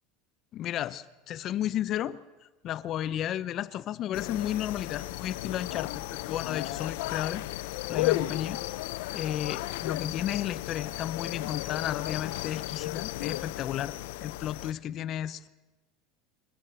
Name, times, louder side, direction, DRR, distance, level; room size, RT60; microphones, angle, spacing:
voice 1, 0.5-2.2 2.6-7.4 7.9-8.6 9.1-15.5, left 11 dB, 40° left, 17 dB, 0.7 m, -33 dB
sound 1, 4.1-14.7, left 17 dB, 75° left, 0.7 m, -34 dB
26.5 x 15.0 x 7.7 m, 1.2 s
supercardioid pair, 140°, 0 cm